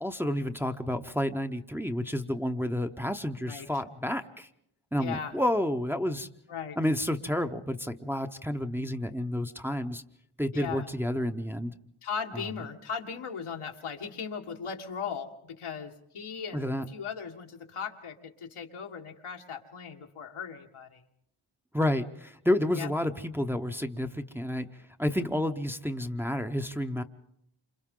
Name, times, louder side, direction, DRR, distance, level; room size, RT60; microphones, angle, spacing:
voice 1, 0.0-4.5 4.9-6.3 6.8-10.0 10.4-11.7 16.5-16.9 21.7-24.7 25.0-27.0, left 1 dB, 5° right, 6 dB, 0.7 m, -30 dB
voice 2, 5.0-5.4 6.5-6.8 10.5-10.9 12.0-15.3 15.6-21.0 22.7-22.9, left 6 dB, 85° left, 2 dB, 1.8 m, -38 dB
28.0 x 26.5 x 3.7 m, 0.74 s
wide cardioid pair, 90°, 49 cm